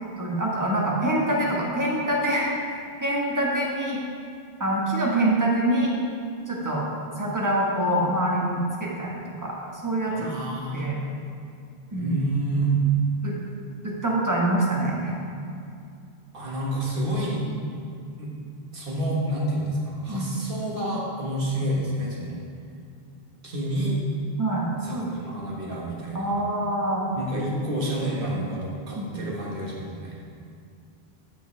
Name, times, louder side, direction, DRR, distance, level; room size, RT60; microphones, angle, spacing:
voice 1, 0.2-2.5 3.0-4.0 4.6-6.0 6.5-6.8 7.2-9.1 9.4-9.6 9.8-10.3 10.7-11.0 11.9-12.2 13.2-13.3 13.8-15.2 20.1-20.3 24.4-25.1 26.1-27.0 29.0-29.2, right 1 dB, 20° right, -3 dB, 1.3 m, -25 dB
voice 2, 10.1-10.8 11.9-12.8 16.3-17.4 18.2-18.3 18.7-22.4 23.4-24.0 24.8-26.3 27.1-30.2, right 1 dB, 60° right, -4 dB, 1.7 m, -29 dB
13.0 x 5.5 x 3.3 m, 2.4 s
omnidirectional pair, 1.0 m